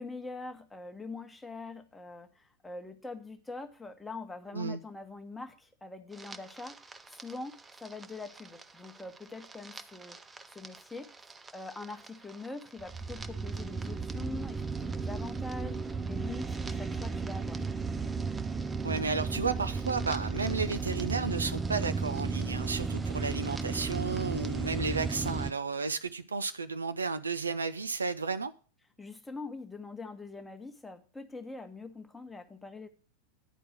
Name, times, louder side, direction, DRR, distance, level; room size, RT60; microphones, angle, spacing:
voice 1, 0.0-10.2 10.5-17.7 29.0-32.9, left 3 dB, 10° left, 1.1 m, -44 dB
sound 1, 6.1-25.5, right 4 dB, 15° right, 0.5 m, -35 dB
voice 2, 18.8-28.5, right 4 dB, 75° right, 0.5 m, -33 dB
10.0 x 4.6 x 7.9 m
figure-of-eight pair, 90°, 0 cm